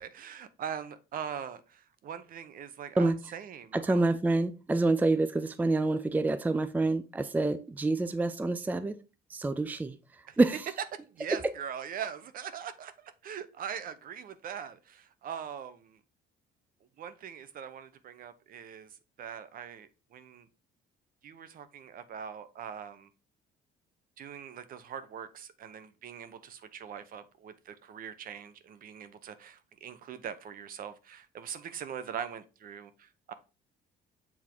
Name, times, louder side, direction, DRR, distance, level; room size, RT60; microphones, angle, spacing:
voice 1, 0.0-4.0 10.3-10.4 11.0-16.0 17.0-20.5 21.2-23.1 24.2-33.3, right 8 dB, 55° right, 0.9 m, -42 dB
voice 2, 3.7-9.0 9.3-10.0 10.4-10.7, right 2 dB, 10° right, 0.5 m, -27 dB
7.2 x 3.6 x 4.5 m
cardioid pair, 110°, 17 cm